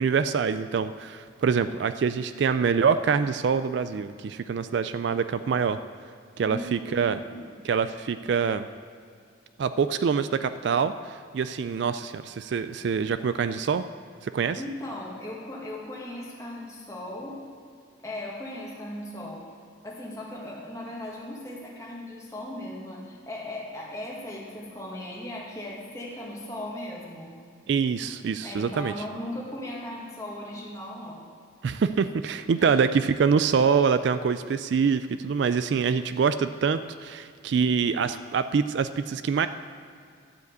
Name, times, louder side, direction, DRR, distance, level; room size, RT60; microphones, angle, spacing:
voice 1, 0.0-5.8 6.4-7.2 7.6-8.7 9.6-13.8 14.2-14.6 27.7-28.9 31.6-39.5, right 6 dB, 55° right, 11 dB, 0.3 m, -25 dB
voice 2, 6.4-7.6 14.5-17.4 18.0-19.4 19.8-27.3 28.4-31.2 32.6-32.8, left 1 dB, 15° left, -4 dB, 1.8 m, -38 dB
12.0 x 5.1 x 8.0 m, 2.3 s
head